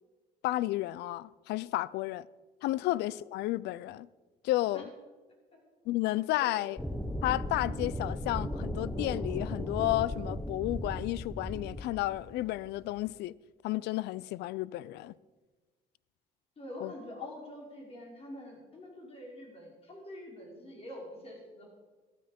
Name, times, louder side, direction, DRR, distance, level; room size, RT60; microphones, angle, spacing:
voice 1, 0.4-2.3 2.6-4.1 4.4-4.8 5.9-6.8 7.2-13.3 13.6-15.1 16.8-16.9, left 16 dB, 80° left, 0.4 m, -32 dB
voice 2, 6.4-6.7 16.6-21.7, left 1 dB, 35° left, 5.3 m, -46 dB
sound 1, 6.8-13.1, left 1 dB, 5° left, 0.8 m, -36 dB
15.0 x 13.0 x 5.2 m
cardioid pair, 110°, 17 cm